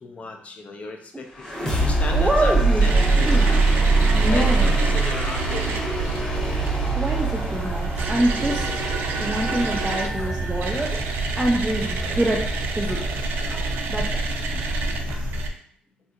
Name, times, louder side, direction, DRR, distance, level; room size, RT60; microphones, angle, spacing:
voice 1, 0.0-3.6 4.3-6.2, left 3 dB, 40° left, 3 dB, 0.6 m, -34 dB
sound 1, 1.4-11.1, right 3 dB, 20° left, 0.9 m, -23 dB
voice 2, 2.1-3.6 4.1-4.8 6.9-8.7 9.2-11.0 11.4-12.5 12.8-13.1 13.9-14.3 15.1-15.2, right 1 dB, 10° right, -2 dB, 0.4 m, -26 dB
sound 2, 2.8-15.5, right 3 dB, 80° right, 0.5 m, -28 dB
sound 3, 6.1-15.4, equal, 60° left, 1.5 m, -39 dB
3.5 x 2.7 x 2.4 m, 0.62 s
cardioid pair, 105°, 3 cm